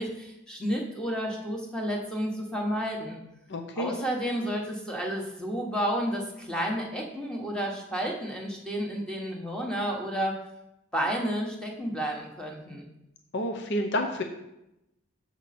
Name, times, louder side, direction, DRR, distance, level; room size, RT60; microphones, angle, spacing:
voice 1, 0.0-3.2 3.8-10.4 10.9-12.9, equal, 5° left, 0 dB, 1.2 m, -31 dB
voice 2, 3.5-4.0 13.3-14.2, left 1 dB, 55° left, 4 dB, 0.7 m, -29 dB
7.4 x 7.2 x 4.2 m, 0.88 s
head